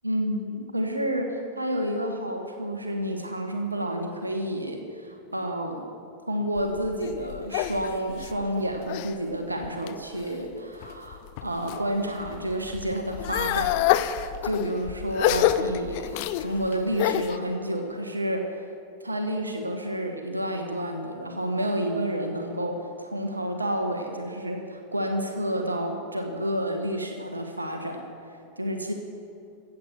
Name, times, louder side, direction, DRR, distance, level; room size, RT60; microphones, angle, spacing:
voice 1, 0.0-5.9 6.3-18.6 19.0-28.9, right 1 dB, 80° right, 4 dB, 1.2 m, -30 dB
sound 1, 6.6-9.1 9.6-10.2 10.8-11.8 12.2-17.4, left 13 dB, 45° left, 0.5 m, -27 dB
15.0 x 8.4 x 6.7 m, 2.5 s
figure-of-eight pair, 90°, 0 cm